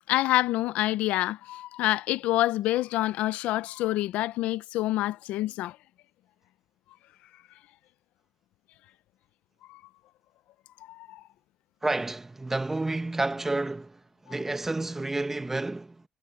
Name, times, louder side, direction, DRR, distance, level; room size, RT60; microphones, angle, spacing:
voice 1, 0.1-5.8 9.7-9.8 10.9-11.2, left 16 dB, 80° left, 0.6 m, -27 dB
voice 2, 11.8-16.0, right 2 dB, 15° right, 1.3 m, -30 dB
supercardioid pair, 85°, 2 cm